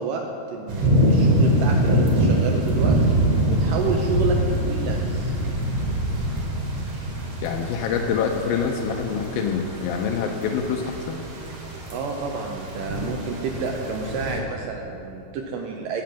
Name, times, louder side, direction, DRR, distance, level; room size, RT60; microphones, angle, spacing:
voice 1, 0.0-3.1 3.5-5.3 11.9-16.0, right 4 dB, 80° right, 1 dB, 2.0 m, -29 dB
sound 1, 0.7-14.4, right 1 dB, 50° right, 2.2 m, -24 dB
voice 2, 7.4-11.2, left 6 dB, 80° left, 1 dB, 2.3 m, -26 dB
8.5 x 7.5 x 7.2 m, 2.8 s
omnidirectional pair, 4.4 m